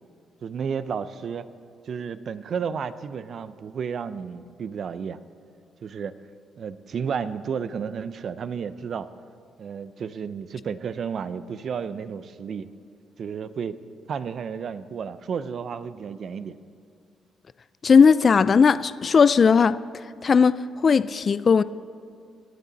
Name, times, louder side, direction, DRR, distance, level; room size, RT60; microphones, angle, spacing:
voice 1, 0.4-1.5 1.9-5.2 5.8-6.1 6.6-9.1 9.6-12.7 13.2-13.8 14.1-16.5, right 6 dB, 55° right, 14 dB, 0.5 m, -32 dB
voice 2, 17.8-19.8 20.2-21.6, left 5 dB, 40° left, 15 dB, 0.3 m, -17 dB
23.5 x 8.3 x 4.1 m, 2.3 s
cardioid pair, 90°, 0 cm